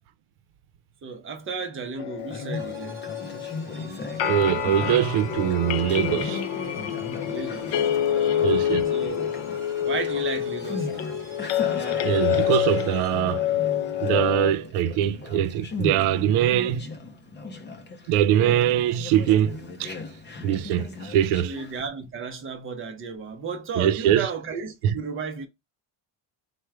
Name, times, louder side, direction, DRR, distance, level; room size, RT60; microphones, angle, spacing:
voice 1, 1.0-3.0 7.3-8.6 8.9-9.4 9.8-11.2 21.4-25.5, right 5 dB, 25° right, 0.5 m, -34 dB
sound 1, 2.0-14.5, left 10 dB, 65° left, 0.6 m, -27 dB
Conversation, 2.2-21.9, left 3 dB, 25° left, 0.4 m, -38 dB
sound 2, 2.5-13.3, right 2 dB, 5° right, 1.0 m, -48 dB
voice 2, 4.2-6.4 8.4-8.8 12.0-13.5 14.0-16.8 18.1-19.9 20.4-21.6 23.8-24.3 24.8-24.9, right 10 dB, 90° right, 0.6 m, -22 dB
4.4 x 2.1 x 4.6 m
cardioid pair, 180°, 48 cm